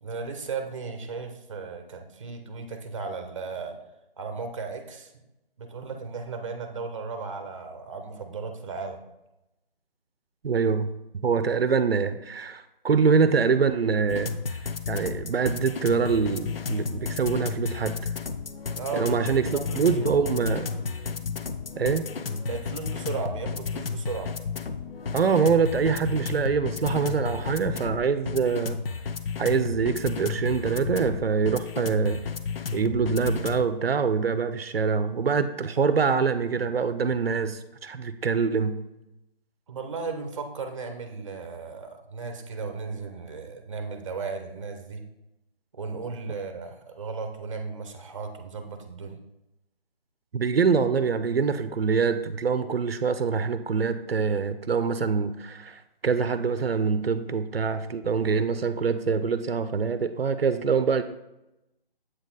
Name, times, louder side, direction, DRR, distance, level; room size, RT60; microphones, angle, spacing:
voice 1, 0.0-3.8 4.2-5.1 5.6-9.0 18.8-20.2 22.4-24.3 39.7-45.0 45.7-49.2, right 4 dB, 35° right, 6 dB, 0.7 m, -35 dB
voice 2, 10.4-10.9 11.2-14.3 14.9-18.1 18.9-20.7 21.8-22.1 25.1-28.8 29.4-32.3 32.7-38.8 50.3-61.0, right 5 dB, 80° right, 11 dB, 0.6 m, -25 dB
sound 1, 14.1-33.6, left 5 dB, 70° left, 0.6 m, -32 dB
7.9 x 4.1 x 3.9 m, 0.92 s
figure-of-eight pair, 160°, 29 cm